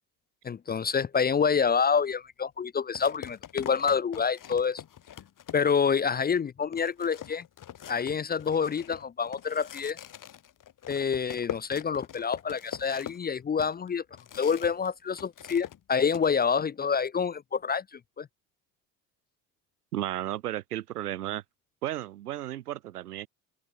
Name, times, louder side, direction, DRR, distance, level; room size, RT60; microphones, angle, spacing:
voice 1, 0.4-4.8 5.5-7.5 7.9-10.0 10.9-14.0 14.3-18.3, left 6 dB, 20° left, 0.6 m, -27 dB
sound 1, 2.0-2.1 2.9-5.9 6.4-6.5 6.7-14.9 15.1-16.3, left 10 dB, 45° left, 2.5 m, -43 dB
voice 2, 19.9-21.4 21.8-23.3, right 13 dB, 85° right, 2.0 m, -33 dB
open air
hypercardioid pair, 60°, 45 cm